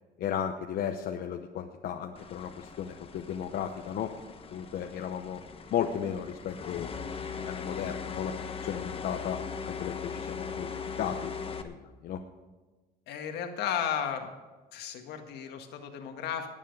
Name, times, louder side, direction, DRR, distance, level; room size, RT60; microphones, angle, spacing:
voice 1, 0.2-4.1 4.5-5.4 5.7-6.9 7.3-8.3 8.6-9.4 9.7-10.7 11.0-11.3 11.6-11.8 12.0-12.2, left 9 dB, 65° left, 4 dB, 0.9 m, -34 dB
sound 1, 2.1-11.6, left 6 dB, 35° left, 1.2 m, -40 dB
voice 2, 13.1-14.3 14.7-16.5, left 8 dB, 80° left, 5 dB, 1.7 m, -34 dB
20.0 x 7.4 x 5.4 m, 1.3 s
cardioid pair, 110°, 17 cm